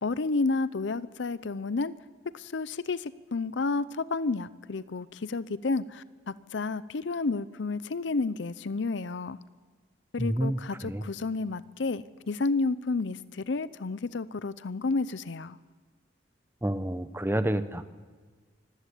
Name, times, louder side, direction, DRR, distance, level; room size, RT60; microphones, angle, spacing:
voice 1, 0.0-1.9 2.3-9.4 10.1-15.6, left 3 dB, 75° left, 16 dB, 0.6 m, -31 dB
voice 2, 10.2-11.0 16.6-17.8, right 1 dB, 10° right, 11 dB, 0.9 m, -29 dB
24.5 x 15.0 x 8.4 m, 1.5 s
head